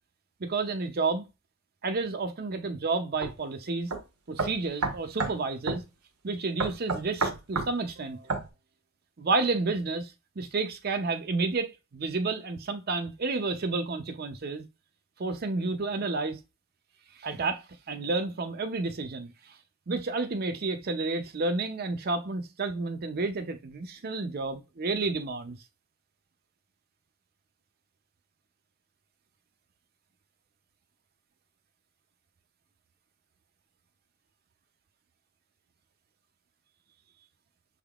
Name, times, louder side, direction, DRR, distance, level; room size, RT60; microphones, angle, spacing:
voice 1, 0.4-1.2 1.8-3.9 4.3-5.8 6.2-8.3 9.2-14.7 15.2-16.4 17.2-19.3 19.9-25.6, right 3 dB, 45° right, 0.5 m, -30 dB
sound 1, 3.2-3.3 3.9-4.0 4.4-5.4 5.7-5.8 6.6-7.7 8.3-8.5, right 3 dB, 80° right, 1.1 m, -29 dB
6.5 x 3.5 x 2.3 m
head